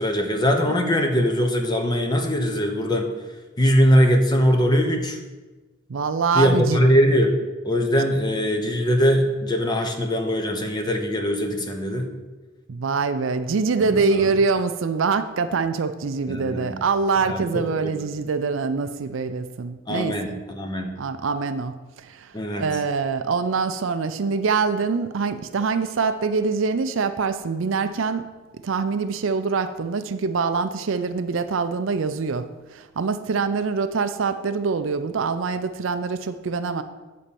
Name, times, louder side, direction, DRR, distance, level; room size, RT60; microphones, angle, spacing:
voice 1, 0.0-3.1 3.6-5.2 6.3-7.4 7.6-12.1 13.8-14.2 16.3-16.7 17.2-17.9 19.9-20.9 22.3-22.7, equal, 20° left, 4 dB, 0.7 m, -21 dB
voice 2, 5.9-6.8 12.7-20.2 21.0-28.3 28.6-36.8, right 4 dB, 70° right, 10 dB, 0.5 m, -24 dB
9.0 x 4.2 x 6.8 m, 1.2 s
head